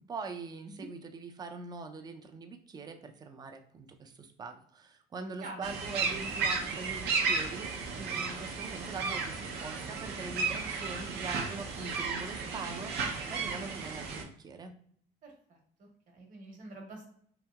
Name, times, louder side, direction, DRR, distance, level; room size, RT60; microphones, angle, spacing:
voice 1, 0.0-7.7 8.0-14.7, right 4 dB, 25° right, 5 dB, 0.4 m, -43 dB
voice 2, 5.4-5.7 15.2-17.0, right 2 dB, 50° right, 1 dB, 1.0 m, -47 dB
sound 1, 5.6-14.2, right 4 dB, 75° right, 0.6 m, -34 dB
2.8 x 2.7 x 2.2 m, 0.63 s
cardioid pair, 110°, 17 cm